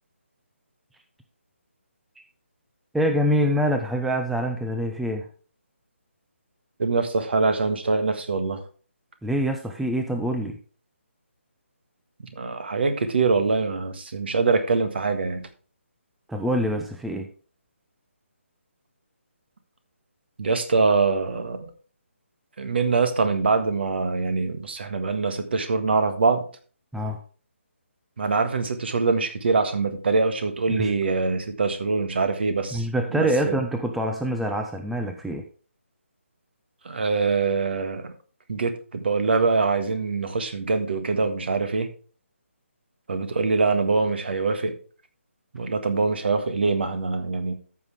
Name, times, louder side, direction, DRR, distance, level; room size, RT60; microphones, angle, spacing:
voice 1, 2.9-5.3 9.2-10.6 16.3-17.3 26.9-27.2 30.7-30.9 32.7-35.4, equal, ahead, 4 dB, 0.5 m, -25 dB
voice 2, 6.8-8.6 12.3-15.5 20.4-21.7 22.6-26.4 28.2-32.9 33.1-33.6 36.8-38.1 38.5-41.9 43.1-44.7 45.5-47.6, right 4 dB, 50° right, 8 dB, 1.6 m, -24 dB
14.0 x 6.0 x 3.5 m, 0.40 s
figure-of-eight pair, 150°, 7 cm